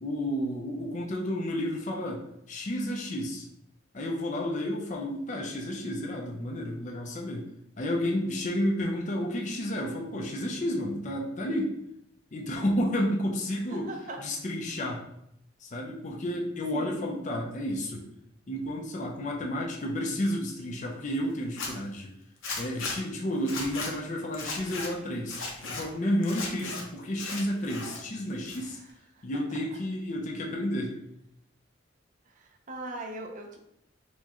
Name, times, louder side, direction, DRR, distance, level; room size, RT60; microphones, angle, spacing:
voice 1, 0.0-3.5 3.9-7.5 7.8-11.7 12.3-13.9 14.2-15.0 15.6-18.0 18.5-22.1 22.6-25.4 25.7-28.8 29.2-31.0, equal, 40° left, 0 dB, 0.5 m, -31 dB
voice 2, 8.1-8.4 13.5-14.4 16.7-17.2 28.6-29.2 32.3-33.6, right 1 dB, 40° right, 2 dB, 0.5 m, -42 dB
Zipper (clothing), 21.4-21.7 22.4-23.0 23.4-23.9 24.3-24.9 25.3-25.8 26.2-26.8 27.1-28.0 28.3-28.9, left 3 dB, 75° left, 0.8 m, -36 dB
4.3 x 2.2 x 2.9 m, 0.78 s
head